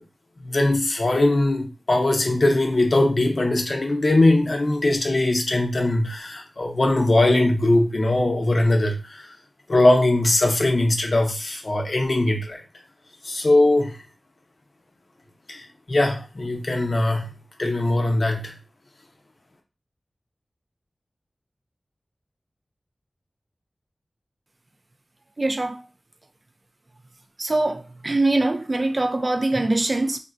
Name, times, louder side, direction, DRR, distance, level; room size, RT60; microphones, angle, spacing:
voice 1, 0.4-9.3 9.7-12.6 13.2-14.0 15.5-17.3 17.6-18.5, left 2 dB, 50° left, 0.7 m, -20 dB
voice 2, 25.4-25.8 27.4-30.2, right 2 dB, 40° right, 0.4 m, -23 dB
3.6 x 2.1 x 2.5 m
wide cardioid pair, 85°, 0 cm